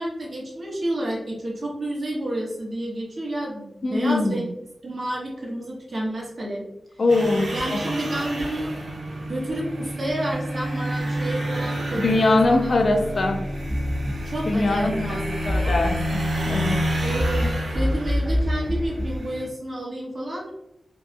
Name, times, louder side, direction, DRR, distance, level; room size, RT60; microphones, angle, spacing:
voice 1, 0.0-4.5 4.8-6.6 7.5-8.7 9.3-12.0 12.5-12.7 14.2-15.3 15.6-15.9 17.0-17.5 17.7-20.5, right 1 dB, 55° right, -4 dB, 0.8 m, -30 dB
voice 2, 3.8-4.4 7.0-7.8 12.0-13.5 14.5-15.2 15.5-16.2 16.5-16.8, left 2 dB, 65° left, 4 dB, 0.4 m, -22 dB
sound 1, 7.1-19.5, equal, 85° right, 0.6 m, -29 dB
sound 2, 12.4-19.2, equal, 30° right, 0.5 m, -28 dB
2.7 x 2.2 x 2.4 m, 0.84 s
cardioid pair, 45°, 0 cm